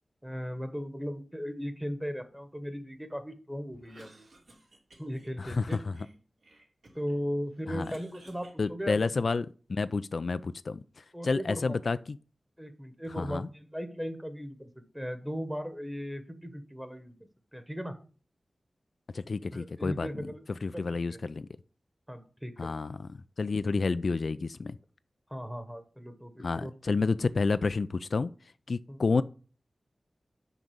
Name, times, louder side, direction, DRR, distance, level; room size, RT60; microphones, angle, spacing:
voice 1, 0.2-4.2 5.0-5.8 6.9-9.1 11.1-11.8 12.6-17.2 17.5-17.9 19.5-20.4 20.7-20.8 21.1-21.2 22.1-22.7 25.3-26.7 28.9-29.0, equal, 5° right, 1.1 m, -37 dB
Cough, 3.7-5.3 5.7-7.2 7.5-9.4, right 2 dB, 75° right, 3.1 m, -57 dB
voice 2, 5.4-6.0 7.7-7.9 8.6-12.2 13.2-13.5 19.1-20.3 20.6-21.5 22.6-23.1 23.4-24.8 26.4-28.3 28.7-29.2, left 4 dB, 65° left, 0.3 m, -30 dB
6.1 x 5.3 x 6.9 m
wide cardioid pair, 85°, 0 cm